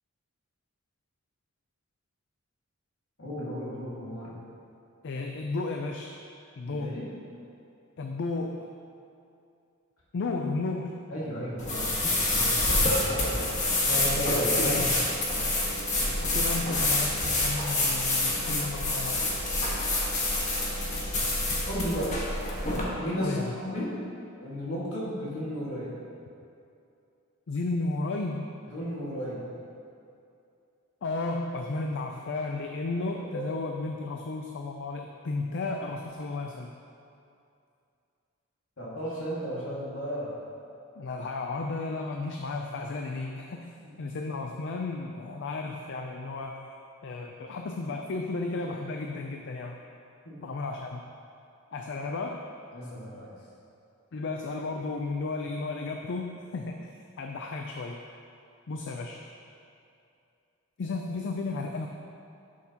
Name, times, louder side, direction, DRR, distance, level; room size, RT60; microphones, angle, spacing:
voice 1, 3.2-4.3 6.7-7.1 11.1-13.0 13.3-14.9 21.7-22.2 23.0-24.0 24.4-26.0 28.7-29.5 33.3-33.4 38.8-40.4 50.3-50.4 52.7-53.3, equal, 85° left, -7 dB, 1.9 m, -34 dB
voice 2, 5.0-6.2 6.6-7.0 8.0-8.7 10.1-11.0 14.6-15.0 16.2-19.3 23.2-23.5 27.5-28.5 31.0-36.8 41.0-46.7 47.0-49.8 50.4-51.1 51.7-52.5 54.1-56.9 57.2-58.0 58.7-59.2 60.8-61.9, left 3 dB, 60° left, 3 dB, 0.4 m, -33 dB
sound 1, 11.6-22.8, left 2 dB, 35° left, 1.4 m, -27 dB
11.5 x 6.3 x 2.9 m, 2.6 s
head